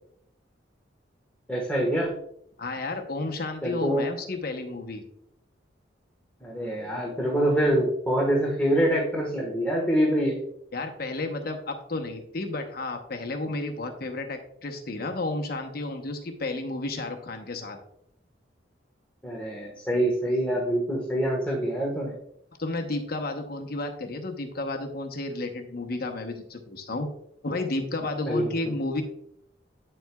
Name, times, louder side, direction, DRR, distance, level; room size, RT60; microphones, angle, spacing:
voice 1, 1.5-2.1 3.6-4.1 6.4-10.4 19.2-22.1 28.3-28.5, right 1 dB, 10° left, -2 dB, 1.4 m, -25 dB
voice 2, 2.6-5.0 10.7-17.8 22.6-27.1 27.4-29.0, left 2 dB, 50° left, 4 dB, 0.9 m, -32 dB
9.2 x 7.6 x 2.3 m, 0.72 s
head